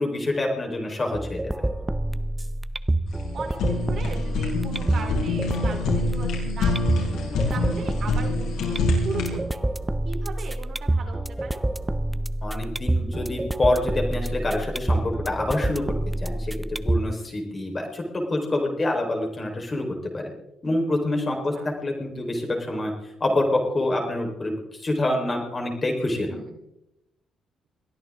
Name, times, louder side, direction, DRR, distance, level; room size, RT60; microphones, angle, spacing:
voice 1, 0.0-1.7 12.4-15.8 16.2-16.5 16.8-20.3 20.6-21.5 21.8-22.9 23.2-24.5 24.8-26.3, left 1 dB, 25° left, 1 dB, 4.3 m, -26 dB
sound 1, 1.1-17.1, right 1 dB, 10° right, 0.5 m, -27 dB
Fire, 3.1-9.4, left 3 dB, 80° left, 6.6 m, -27 dB
voice 2, 3.3-7.1 7.5-9.6 10.0-11.6 21.5-21.7 26.3-26.6, right 5 dB, 50° right, 3 dB, 3.6 m, -38 dB
22.0 x 15.0 x 3.8 m, 0.86 s
cardioid pair, 145°, 0 cm